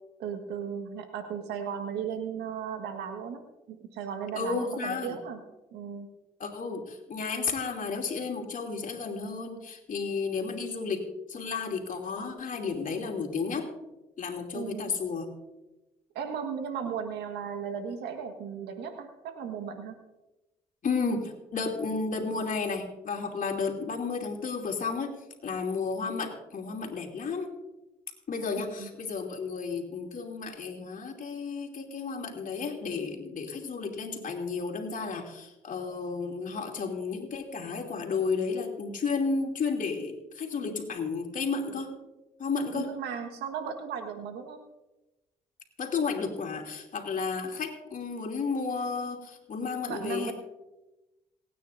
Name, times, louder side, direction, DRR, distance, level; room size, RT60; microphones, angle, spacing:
voice 1, 0.2-5.4 5.7-6.1 14.5-15.0 16.1-20.0 28.8-28.9 42.7-44.6 49.9-50.3, right 7 dB, 80° right, 6 dB, 1.6 m, -36 dB
voice 2, 4.3-5.2 6.4-13.7 14.2-15.3 20.8-25.2 25.4-27.5 28.3-41.9 42.4-42.9 45.8-50.3, left 4 dB, 55° left, 2 dB, 2.8 m, -32 dB
27.5 x 9.4 x 2.7 m, 1.0 s
hypercardioid pair, 50°, 17 cm